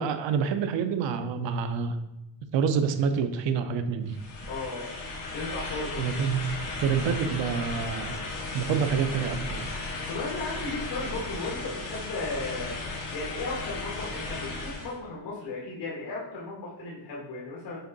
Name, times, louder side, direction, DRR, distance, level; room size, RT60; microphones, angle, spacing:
voice 1, 0.0-2.0 2.5-4.1 6.0-9.7, right 6 dB, 85° right, 9 dB, 0.8 m, -27 dB
sound 1, 4.1-15.0, left 3 dB, 45° left, 2.0 m, -35 dB
voice 2, 4.5-5.0 5.3-6.2 9.9-12.8 13.1-17.8, left 3 dB, 70° left, -5 dB, 1.8 m, -35 dB
6.8 x 4.4 x 4.0 m, 0.97 s
cardioid pair, 155°, 43 cm